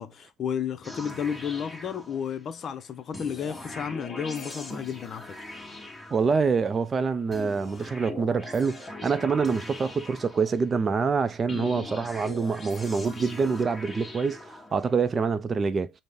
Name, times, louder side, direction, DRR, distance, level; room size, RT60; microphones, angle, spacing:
voice 1, 0.0-5.4 11.5-12.0, left 8 dB, 50° left, 0.6 m, -33 dB
sound 1, 0.8-2.6 3.1-6.7 7.3-10.9 11.5-15.0, left 2 dB, 15° left, 1.2 m, -41 dB
voice 2, 6.1-15.9, right 5 dB, 35° right, 0.4 m, -26 dB
5.2 x 2.1 x 3.5 m
hypercardioid pair, 70°, 0 cm